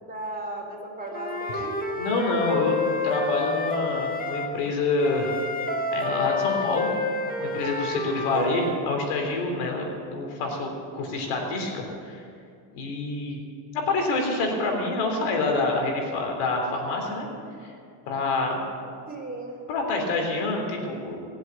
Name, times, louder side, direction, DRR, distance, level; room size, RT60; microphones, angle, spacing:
voice 1, 0.1-1.8 8.3-8.6 19.1-19.6, right 1 dB, 20° right, -1 dB, 3.9 m, -35 dB
Wind instrument woodwind instrument, 1.1-4.5 5.0-8.8, left 3 dB, 15° left, 1.6 m, -29 dB
voice 2, 2.0-2.8 3.0-5.3 5.9-6.9 7.4-12.2 12.7-13.4 13.7-17.3 17.6-17.7 18.1-18.6 19.7-21.2, left 3 dB, 85° left, 2 dB, 3.6 m, -27 dB
19.5 x 7.9 x 8.4 m, 2.4 s
cardioid pair, 105°, 49 cm